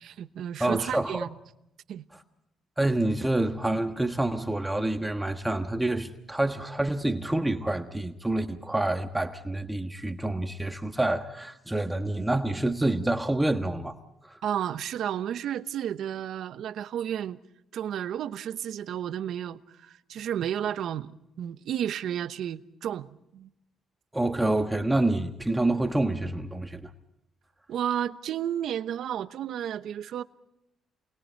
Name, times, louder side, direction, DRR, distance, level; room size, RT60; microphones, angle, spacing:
voice 1, 0.0-1.3 1.9-2.0 14.4-17.4 17.7-23.5 27.7-30.2, right 10 dB, 75° right, 1.0 m, -32 dB
voice 2, 0.6-1.3 2.8-14.0 14.2-14.4 24.1-26.9, right 2 dB, 10° right, 1.5 m, -27 dB
29.0 x 22.0 x 4.6 m
cardioid pair, 90°, 0 cm